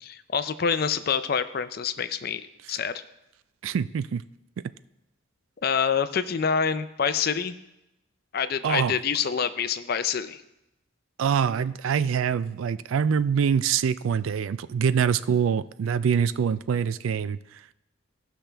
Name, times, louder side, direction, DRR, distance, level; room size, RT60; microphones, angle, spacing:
voice 1, 0.0-2.9 5.6-7.5 8.3-10.4, left 6 dB, 50° left, 12 dB, 0.4 m, -26 dB
voice 2, 3.6-4.2 8.6-9.0 11.2-17.4, right 7 dB, 75° right, 15 dB, 0.3 m, -24 dB
16.5 x 5.9 x 3.4 m, 0.92 s
head